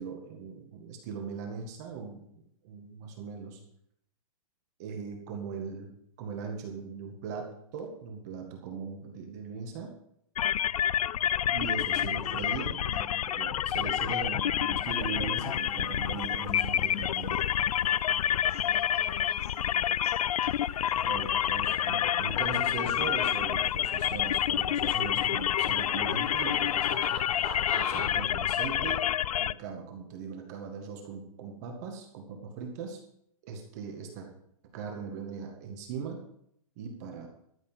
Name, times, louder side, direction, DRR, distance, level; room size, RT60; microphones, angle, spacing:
voice 1, 0.0-2.2 2.6-3.6 4.8-5.9 6.2-10.0 11.5-17.5 21.1-27.1 27.7-29.0 29.4-33.0 33.5-34.3 34.7-36.2 36.8-37.3, right 5 dB, 30° right, 3 dB, 1.9 m, -39 dB
sound 1, 10.4-29.5, left 10 dB, 85° left, 0.4 m, -28 dB
voice 2, 11.8-12.6 18.5-21.5 22.6-23.2, left 3 dB, 45° left, 0 dB, 4.8 m, -52 dB
sound 2, 14.9-28.1, left 2 dB, 25° left, 2.9 m, -47 dB
13.0 x 7.2 x 7.5 m, 0.70 s
hypercardioid pair, 175°, 18 cm